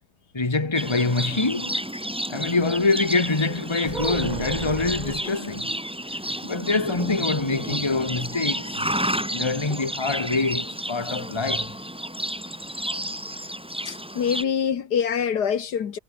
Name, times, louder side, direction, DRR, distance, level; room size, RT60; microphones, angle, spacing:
voice 1, 0.3-1.8 2.3-5.7 6.4-8.7 9.3-11.7, left 3 dB, 15° left, 1.8 m, -25 dB
Livestock farm animals working animals, 0.7-14.4, equal, 5° right, 2.7 m, -31 dB
sound 1, 3.8-5.3 7.0-8.0 8.3-8.4 8.7-9.0, right 4 dB, 30° right, 1.5 m, -34 dB
voice 2, 13.9-16.0, left 7 dB, 75° left, 1.9 m, -25 dB
omnidirectional pair, 1.8 m